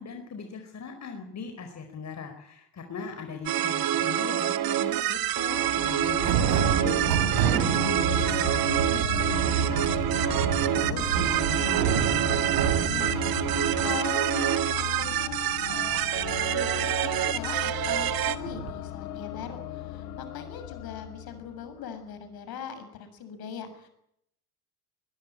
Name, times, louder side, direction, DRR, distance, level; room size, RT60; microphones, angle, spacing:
voice 1, 0.0-6.4 6.8-7.1 7.4-9.9 10.2-12.0, left 5 dB, 35° left, 5 dB, 4.8 m, -39 dB
sound 1, 3.5-18.4, right 12 dB, 50° right, 1.9 m, -27 dB
sound 2, 3.9-4.1 5.4-14.0 14.3-14.4 14.6-17.9 18.4-18.7, right 7 dB, 80° right, 4.3 m, -29 dB
sound 3, 5.8-22.0, left 11 dB, 75° left, 2.8 m, -37 dB
voice 2, 7.1-7.5 12.8-15.3 15.7-23.9, left 7 dB, 55° left, 9 dB, 7.0 m, -41 dB
21.0 x 21.0 x 8.8 m, 0.75 s
hypercardioid pair, 75°, 45 cm